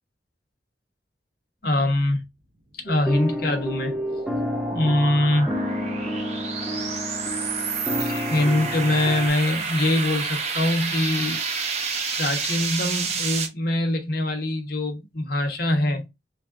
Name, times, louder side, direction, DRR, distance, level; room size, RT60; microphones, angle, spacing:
voice 1, 1.6-2.2 2.8-3.9 4.7-5.5 8.0-11.4 12.2-16.1, left 1 dB, 55° left, 0.9 m, -23 dB
sound 1, 2.9-9.3, left 1 dB, ahead, 0.4 m, -30 dB
sound 2, 3.3-13.5, right 5 dB, 40° right, 0.7 m, -30 dB
3.4 x 2.4 x 3.5 m
head